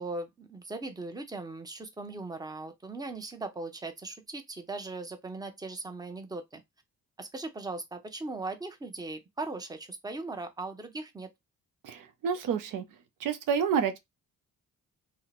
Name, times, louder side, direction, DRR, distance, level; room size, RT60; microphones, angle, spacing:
voice 1, 0.0-6.6 7.2-11.3, right 3 dB, 10° right, 0.7 m, -39 dB
voice 2, 11.8-12.8 13.2-14.0, right 7 dB, 75° right, 0.6 m, -29 dB
2.7 x 2.1 x 4.0 m
cardioid pair, 85°, 32 cm